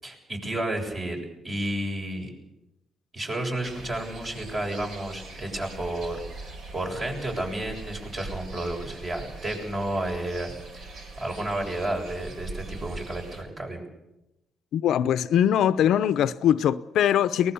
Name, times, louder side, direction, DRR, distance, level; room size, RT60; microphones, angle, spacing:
voice 1, 0.0-2.3 3.1-10.9 11.2-13.8, right 1 dB, 35° right, 7.7 m, -32 dB
sound 1, 3.6-13.4, right 2 dB, 75° right, 4.5 m, -41 dB
voice 2, 14.7-17.5, left 10 dB, 75° left, 0.7 m, -22 dB
23.5 x 20.0 x 7.0 m
cardioid pair, 90°, 0 cm